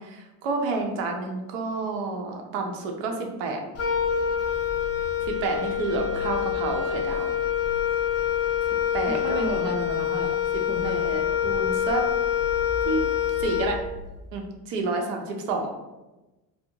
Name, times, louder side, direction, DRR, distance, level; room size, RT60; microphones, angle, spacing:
voice 1, 0.4-3.6 5.4-7.3 8.9-9.6 10.5-12.0 12.9-13.0 13.4-13.8 14.3-15.7, right 3 dB, 75° right, 2 dB, 0.7 m, -29 dB
Wind instrument woodwind instrument, 3.7-14.2, left 9 dB, 35° left, 0.5 m, -26 dB
voice 2, 9.1-10.4 10.7-11.0, right 1 dB, 25° right, 0 dB, 0.6 m, -33 dB
2.8 x 2.0 x 3.7 m, 1.1 s
supercardioid pair, 105°, 42 cm